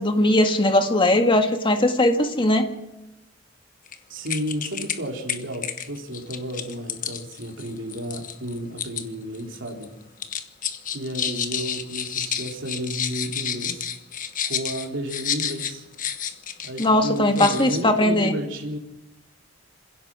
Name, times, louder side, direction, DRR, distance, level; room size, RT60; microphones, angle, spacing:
voice 1, 0.0-2.7 16.8-18.3, left 1 dB, 25° left, 6 dB, 1.8 m, -19 dB
sound 1, 3.9-4.0 4.3-5.0 5.3-9.0 9.3-9.8 10.2-16.9 17.2-17.8, left 8 dB, 45° left, 1.3 m, -30 dB
voice 2, 4.1-9.9 10.9-13.9 14.4-15.8 16.6-18.8, equal, 70° right, 0 dB, 3.3 m, -32 dB
26.5 x 16.5 x 6.2 m, 0.92 s
head